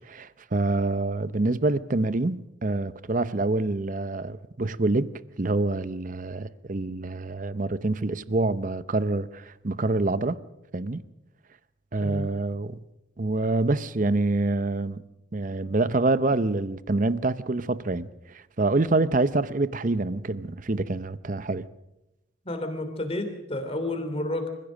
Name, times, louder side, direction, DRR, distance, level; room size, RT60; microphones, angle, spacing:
voice 1, 0.0-10.4 10.7-11.0 11.9-12.8 13.2-15.0 15.3-21.7, right 2 dB, 40° right, 0.6 m, -26 dB
voice 2, 22.4-24.5, left 1 dB, 30° left, 3.0 m, -30 dB
28.0 x 15.5 x 6.4 m
head